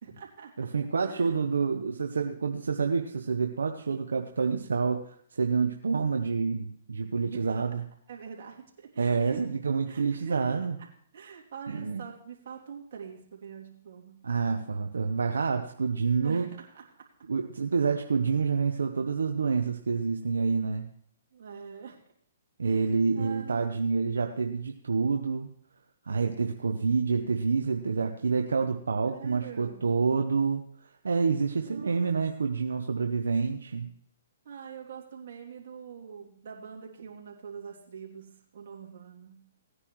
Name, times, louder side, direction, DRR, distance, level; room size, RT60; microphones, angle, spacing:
voice 1, 0.0-0.7 1.1-1.4 7.3-7.5 8.1-9.4 9.9-10.9 11.1-14.3 16.0-16.5 16.7-16.8 21.3-22.0 22.6-23.8 29.1-29.9 31.5-32.2 34.4-39.4, right 7 dB, 60° right, -1 dB, 2.8 m, -44 dB
voice 2, 0.6-7.7 9.0-10.8 11.7-12.0 14.2-16.5 17.3-20.9 22.6-25.5 26.1-30.6 31.0-33.9, right 5 dB, 85° right, 5 dB, 0.8 m, -28 dB
18.0 x 9.7 x 3.1 m, 0.63 s
hypercardioid pair, 140°, 0 cm